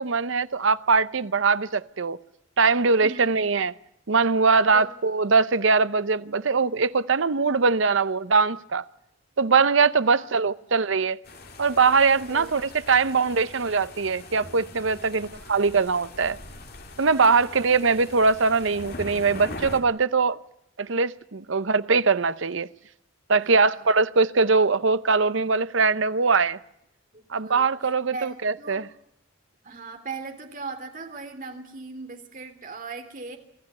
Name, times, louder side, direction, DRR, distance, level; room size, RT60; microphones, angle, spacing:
voice 1, 0.0-2.2 2.6-3.7 4.1-8.8 9.4-11.2 11.6-16.4 17.0-20.4 20.8-22.7 23.3-26.6 27.3-28.9, right 4 dB, 65° right, 0.7 m, -22 dB
voice 2, 3.0-3.6 4.7-4.9 10.0-10.8 12.1-12.5 17.3-17.7 23.3-24.1 27.1-27.7 28.1-28.9 29.6-33.4, right 3 dB, 40° right, 3.2 m, -40 dB
sound 1, 11.2-19.8, left 2 dB, 45° left, 2.8 m, -42 dB
25.5 x 14.0 x 9.7 m
head